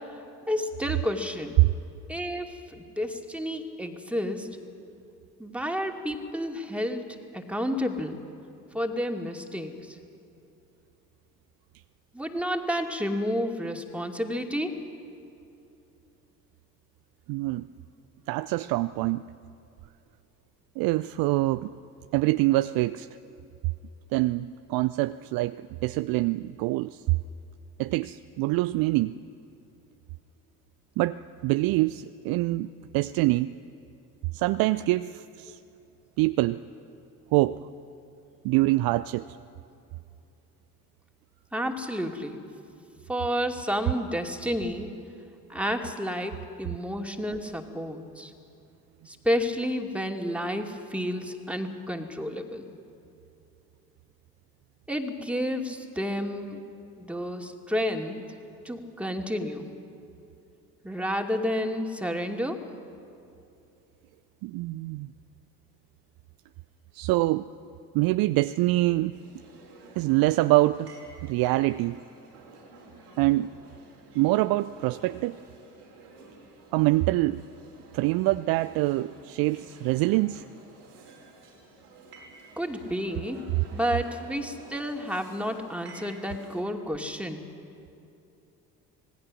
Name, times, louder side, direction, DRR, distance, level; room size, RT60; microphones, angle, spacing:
voice 1, 0.5-1.6 2.1-4.5 5.4-8.2 8.7-10.0 12.1-14.8 41.5-42.4 43.1-45.0 45.5-48.3 49.1-52.7 54.9-56.6 57.0-58.2 58.6-59.7 60.8-62.6 82.6-83.4 83.7-87.4, equal, 5° right, 3 dB, 2.6 m, -30 dB
voice 2, 17.3-17.6 18.3-19.2 20.8-21.7 22.1-23.1 24.1-27.0 27.8-29.2 31.0-33.5 34.3-35.6 36.2-36.6 37.3-37.6 38.4-39.4 64.4-65.1 66.9-67.5 67.9-69.1 70.0-70.9 71.2-72.0 73.2-73.5 74.1-75.4 76.7-77.4 77.9-80.4, right 18 dB, 50° right, 13 dB, 0.5 m, -25 dB
sound 1, 69.1-86.6, right 2 dB, 80° right, 3.6 m, -51 dB
26.0 x 19.0 x 6.5 m, 2.8 s
figure-of-eight pair, 50°, 46 cm